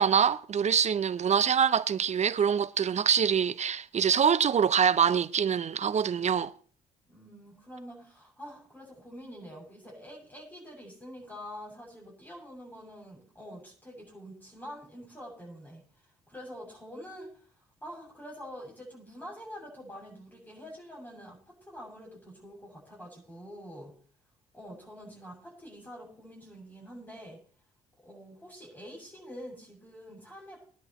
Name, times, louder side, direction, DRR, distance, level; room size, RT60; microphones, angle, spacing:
voice 1, 0.0-6.5, right 7 dB, 40° right, 0.6 m, -25 dB
voice 2, 7.1-15.8 16.3-17.4 17.8-23.9 24.5-27.4 28.0-30.6, equal, 10° left, 7.2 m, -46 dB
20.5 x 10.5 x 3.0 m
hypercardioid pair, 50°, 18 cm